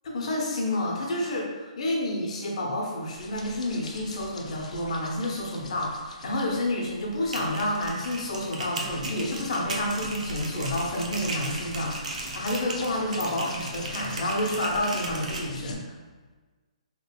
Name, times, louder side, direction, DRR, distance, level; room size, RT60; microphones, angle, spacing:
voice 1, 0.0-15.9, left 1 dB, 65° left, -1 dB, 0.9 m, -29 dB
sound 1, 3.0-15.7, left 3 dB, 80° left, 0.5 m, -44 dB
sound 2, 7.1-15.4, right 2 dB, 75° right, 0.7 m, -37 dB
3.7 x 3.2 x 2.4 m, 1.3 s
hypercardioid pair, 150°, 4 cm